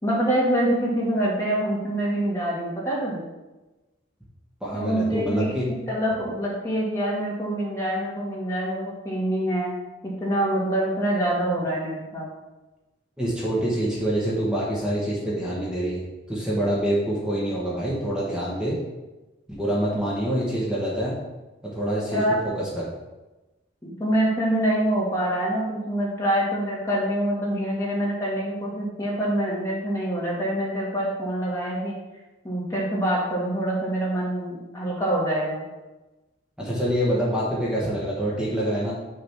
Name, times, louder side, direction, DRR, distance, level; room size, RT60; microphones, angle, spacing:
voice 1, 0.0-3.3 4.7-9.7 10.0-12.3 22.1-22.4 23.8-31.9 32.4-35.6, right 1 dB, 15° left, -5 dB, 1.9 m, -25 dB
voice 2, 4.6-5.6 13.2-18.8 19.5-21.2 21.7-22.2 22.6-22.9 36.6-38.9, right 1 dB, 5° right, -6 dB, 1.5 m, -26 dB
6.5 x 4.0 x 5.9 m, 1.1 s
head